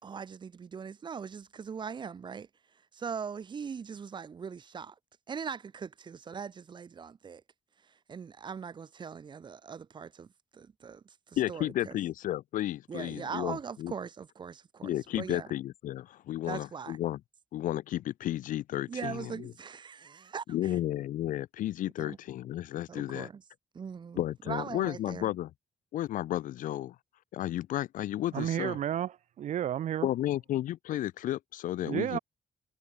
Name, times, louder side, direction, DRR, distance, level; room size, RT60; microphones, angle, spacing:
voice 1, 0.0-2.5 2.9-4.9 5.3-7.4 8.1-12.0 12.9-15.5 16.5-17.0 18.9-20.7 22.0-22.2 22.9-23.4 23.7-25.3, right 6 dB, 35° right, 2.7 m, -41 dB
voice 2, 11.4-13.9 14.8-17.2 17.5-19.5 20.5-23.3 24.2-25.5 25.9-27.0 27.3-28.8 30.0-32.2, left 13 dB, 80° left, 0.6 m, -33 dB
voice 3, 28.3-30.1 31.8-32.2, right 10 dB, 65° right, 1.3 m, -32 dB
wide cardioid pair, 175°, 13 cm